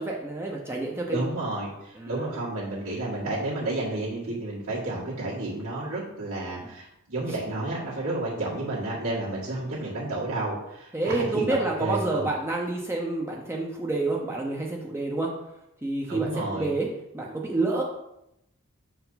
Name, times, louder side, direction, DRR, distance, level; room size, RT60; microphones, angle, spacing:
voice 1, 0.0-1.2 1.9-2.3 6.6-6.7 10.9-15.3 15.8-16.9 17.1-17.8, right 2 dB, 10° right, -1 dB, 0.6 m, -28 dB
voice 2, 1.1-12.3 16.1-16.7, right 2 dB, 70° right, -10 dB, 2.0 m, -31 dB
6.5 x 4.5 x 4.0 m, 0.84 s
head